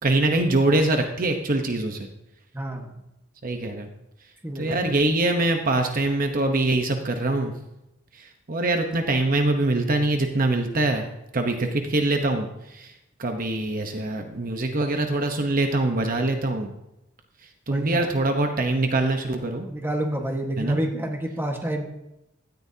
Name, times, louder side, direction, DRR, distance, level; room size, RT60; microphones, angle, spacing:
voice 1, 0.0-2.1 3.4-3.9 4.5-7.5 8.1-11.1 11.3-12.9 13.2-16.7 17.7-19.7 20.6-20.8, right 2 dB, 45° right, 4 dB, 1.0 m, -24 dB
voice 2, 2.5-2.9 4.4-4.8 17.7-18.1 19.7-21.8, right 1 dB, 10° right, 2 dB, 1.5 m, -28 dB
16.5 x 13.5 x 2.8 m, 0.89 s
head